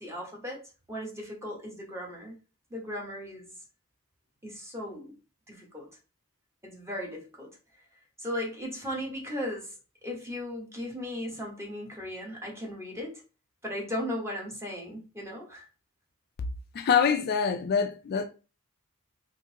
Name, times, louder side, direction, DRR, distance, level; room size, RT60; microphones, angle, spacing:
voice 1, 0.0-2.4 2.7-3.5 4.4-5.2 5.5-5.9 6.6-7.5 8.2-9.7 10.0-13.2 13.6-15.7, left 1 dB, 15° right, 1.0 m, -37 dB
voice 2, 16.7-18.2, left 7 dB, 45° left, 0.3 m, -25 dB
3.7 x 2.6 x 2.8 m
head